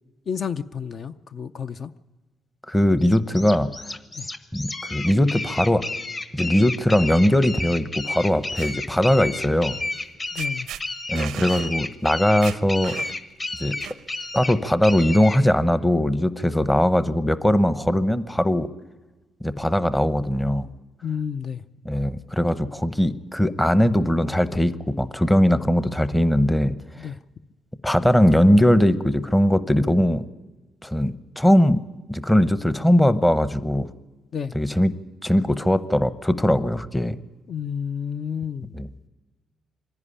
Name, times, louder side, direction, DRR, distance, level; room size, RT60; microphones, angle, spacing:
voice 1, 0.3-1.9 4.2-4.3 10.3-10.7 21.0-21.6 27.0-27.2 34.3-34.5 37.5-38.7, left 7 dB, 50° left, 10 dB, 0.5 m, -30 dB
voice 2, 2.7-3.7 4.5-5.8 6.3-9.8 11.1-12.9 13.6-13.7 14.3-18.7 19.4-20.7 21.8-26.8 27.0-27.1 27.8-30.2 30.8-31.8 32.1-33.9 34.5-34.9 35.2-37.2 38.7-38.9, left 1 dB, 10° left, 13 dB, 0.8 m, -20 dB
sound 1, 3.0-15.4, left 2 dB, 30° left, 1.2 m, -31 dB
sound 2, 8.2-8.7 10.0-10.1 10.3-10.8 11.1-11.7 12.1-12.2 12.4-13.3 13.8-14.3, right 11 dB, 85° right, 0.5 m, -36 dB
24.5 x 11.0 x 10.0 m, 1.2 s
cardioid pair, 90°, 0 cm